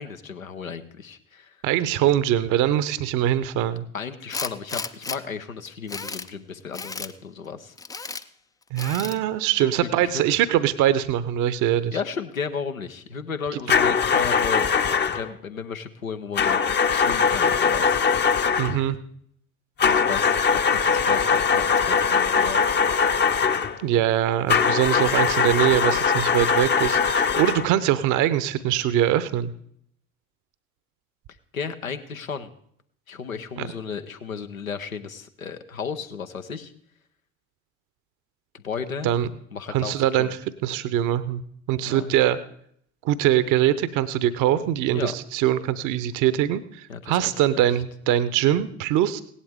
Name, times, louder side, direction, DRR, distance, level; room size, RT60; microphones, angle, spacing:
voice 1, 0.0-1.6 3.9-7.7 9.5-10.2 11.9-14.7 15.1-18.0 19.9-22.8 31.5-32.5 33.1-36.7 38.5-39.1 39.5-40.4 41.8-42.2 44.9-45.1 46.9-47.7, left 6 dB, 85° left, 8 dB, 0.9 m, -34 dB
voice 2, 1.6-3.9 8.7-12.0 18.6-19.0 23.8-29.5 33.6-33.7 39.0-39.3 39.7-40.3 40.6-41.4 41.7-42.4 43.0-49.2, right 12 dB, 50° right, 16 dB, 0.8 m, -22 dB
Tools, 4.3-5.2 5.7-6.3 6.7-7.1 7.8-8.2 8.8-9.2, left 4 dB, 10° left, 0.4 m, -33 dB
sound 1, 13.7-15.3 16.4-18.8 19.8-23.8 24.5-27.7, left 6 dB, 25° left, 0.8 m, -21 dB
17.0 x 11.5 x 3.5 m, 0.67 s
figure-of-eight pair, 55°, 40 cm